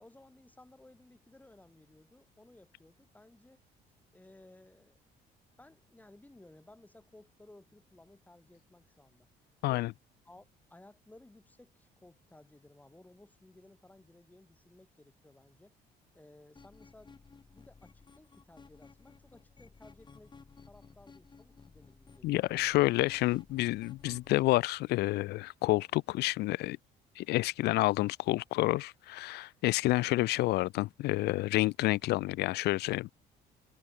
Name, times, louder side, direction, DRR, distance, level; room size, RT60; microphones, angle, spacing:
voice 1, 0.0-3.6 4.1-5.0 5.6-9.3 10.2-15.7 16.1-17.1 17.5-22.6, left 2 dB, 10° left, 6.0 m, -58 dB
sound 1, 16.6-24.5, left 4 dB, 25° left, 7.1 m, -56 dB
voice 2, 22.2-26.8 27.2-33.1, left 18 dB, 80° left, 0.5 m, -29 dB
cardioid pair, 110°, 17 cm